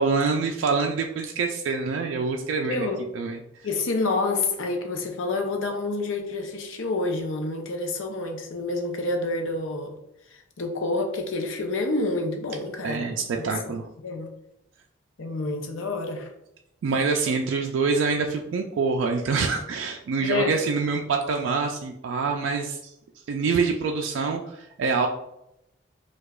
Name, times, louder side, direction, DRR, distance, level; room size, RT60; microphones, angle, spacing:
voice 1, 0.0-2.9 3.1-3.4 12.8-13.9 16.8-22.9 23.3-25.1, right 4 dB, 75° right, 0.3 m, -25 dB
voice 2, 2.7-3.0 3.6-10.0 10.6-13.5 14.0-14.3 15.2-16.3 20.2-20.6, left 2 dB, 80° left, 0.6 m, -28 dB
4.6 x 2.3 x 2.3 m
head